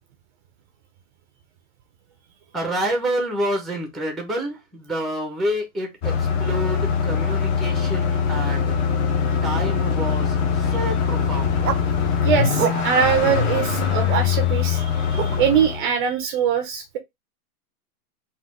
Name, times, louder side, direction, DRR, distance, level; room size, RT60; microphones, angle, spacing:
voice 1, 2.5-5.9 6.4-8.6 9.4-10.3 10.7-11.5, right 1 dB, ahead, 0.7 m, -27 dB
sound 1, 6.0-15.8, left 6 dB, 30° left, 1.0 m, -22 dB
sound 2, 11.6-11.8 12.6-13.1 13.8-14.3 15.2-15.4, right 9 dB, 80° right, 0.9 m, -27 dB
voice 2, 12.2-17.0, right 8 dB, 35° right, 0.7 m, -22 dB
4.2 x 2.5 x 3.7 m
hypercardioid pair, 145°, 45 cm